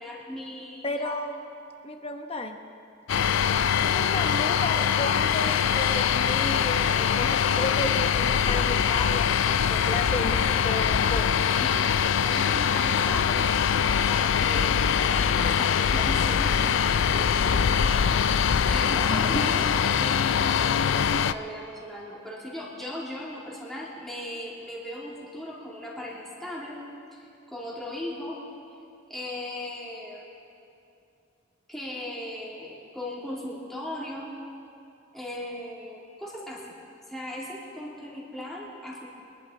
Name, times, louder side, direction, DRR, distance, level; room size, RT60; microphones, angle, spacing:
voice 1, 0.0-1.1 11.6-13.4 14.1-17.3 18.7-26.8 27.1-28.4 29.1-30.3 31.7-34.3 35.1-36.7 37.1-39.1, left 1 dB, ahead, -6 dB, 2.7 m, -37 dB
voice 2, 0.8-1.4 1.8-2.6 3.8-11.4 18.8-19.4, left 2 dB, 30° left, 5 dB, 0.9 m, -33 dB
sound 1, 3.1-21.3, left 7 dB, 65° left, 0.4 m, -23 dB
24.5 x 11.0 x 3.9 m, 2.6 s
head